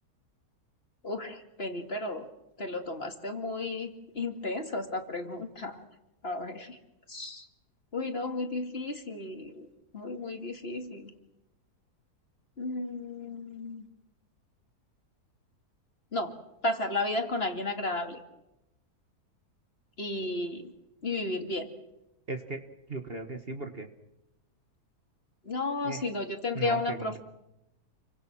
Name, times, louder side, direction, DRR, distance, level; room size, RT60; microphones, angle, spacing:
voice 1, 1.0-2.3 2.6-3.9 4.1-5.8 6.2-6.8 7.1-7.5 7.9-9.7 9.9-11.1 12.6-13.9 16.1-16.3 16.6-18.2 20.0-20.7 21.0-21.7 25.4-27.2, left 2 dB, 40° left, 5 dB, 2.5 m, -33 dB
voice 2, 22.3-22.6 22.9-23.9 25.8-26.0 26.5-27.2, right 3 dB, 40° right, 6 dB, 1.6 m, -37 dB
29.5 x 24.0 x 6.2 m, 0.89 s
omnidirectional pair, 1.7 m